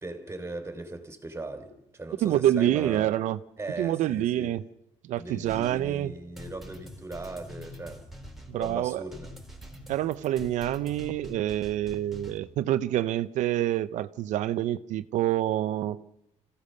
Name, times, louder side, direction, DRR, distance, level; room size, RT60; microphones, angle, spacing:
voice 1, 0.0-3.1 3.6-4.5 5.1-8.1 8.5-9.3, right 2 dB, 20° right, 3.5 m, -39 dB
voice 2, 2.2-3.4 3.8-4.6 5.0-6.1 8.5-9.0 9.9-16.0, right 12 dB, 80° right, 0.8 m, -27 dB
Dance Kit Sample, 5.4-12.4, equal, ahead, 4.0 m, -45 dB
26.0 x 16.5 x 6.7 m
cardioid pair, 110°, 12 cm